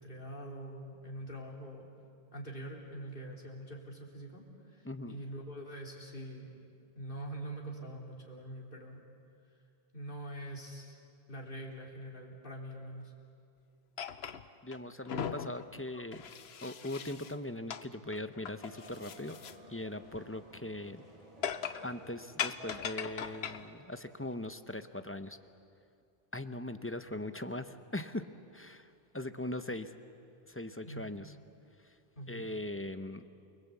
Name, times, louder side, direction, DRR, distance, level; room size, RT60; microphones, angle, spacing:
voice 1, 0.0-1.9 2.3-6.5 7.0-9.0 9.9-11.0 11.3-13.1 30.8-31.1 32.2-32.5, right 1 dB, 60° left, -1 dB, 3.8 m, -44 dB
voice 2, 4.8-5.2 14.6-16.2 16.6-19.4 19.7-21.0 21.8-25.4 26.3-28.3 28.5-29.9 30.5-31.3 31.8-32.0 32.3-33.3, left 1 dB, 15° left, 10 dB, 0.8 m, -40 dB
sound 1, 14.0-14.8 15.0-17.3 17.7-17.8 18.1-19.5 19.9-20.0 21.4-21.9 22.4-23.7, left 8 dB, 90° left, 1.1 m, -39 dB
sound 2, 18.6-23.6, left 2 dB, 35° right, 7.3 m, -54 dB
29.0 x 21.0 x 8.4 m, 2.4 s
omnidirectional pair, 1.0 m